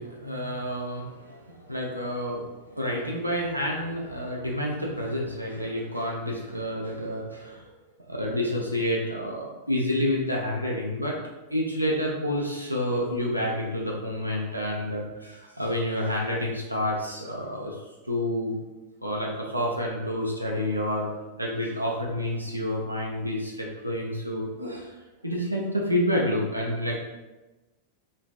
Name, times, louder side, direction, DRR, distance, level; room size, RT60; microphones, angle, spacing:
voice 1, 0.0-7.6 8.1-11.2 11.5-17.8 18.0-18.6 19.0-21.1 21.4-24.9 25.2-27.1, left 1 dB, 90° right, -2 dB, 0.3 m, -29 dB
3.2 x 2.1 x 2.2 m, 1.1 s
figure-of-eight pair, 90°, 0 cm